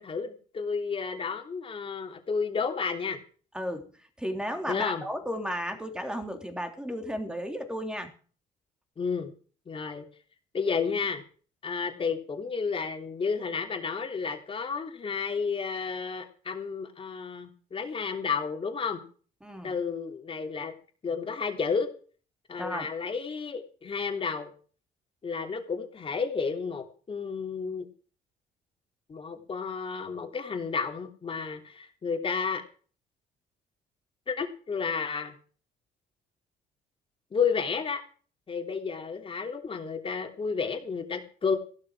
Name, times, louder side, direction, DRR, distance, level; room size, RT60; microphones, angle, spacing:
voice 1, 0.0-3.2 4.7-5.0 9.0-9.3 9.7-10.0 10.5-11.2 11.6-19.0 19.6-20.7 21.0-21.9 22.5-24.5 25.2-27.9 29.1-32.6 34.3-35.3 37.3-38.0 38.5-41.6, left 5 dB, 30° left, 4 dB, 3.3 m, -31 dB
voice 2, 3.5-3.9 4.2-8.1 19.4-19.7 22.6-22.9, equal, 5° right, 5 dB, 3.3 m, -34 dB
15.5 x 12.5 x 4.9 m, 0.41 s
cardioid pair, 110°, 17 cm